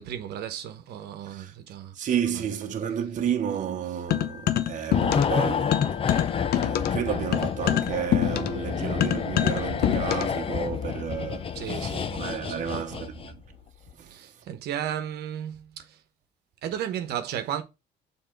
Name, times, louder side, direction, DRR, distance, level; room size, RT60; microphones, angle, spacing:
voice 1, 0.0-2.0 2.3-2.4 11.5-13.2 14.1-16.0 16.6-17.6, right 10 dB, 75° right, 1.1 m, -35 dB
voice 2, 1.9-13.4 14.0-14.2, right 8 dB, 50° right, 1.1 m, -32 dB
sound 1, 4.1-5.4 5.7-10.4, left 11 dB, 65° left, 0.7 m, -26 dB
sound 2, 4.9-13.5 13.7-13.9, left 7 dB, 35° left, 0.6 m, -29 dB
6.8 x 3.6 x 4.6 m
cardioid pair, 110°, 17 cm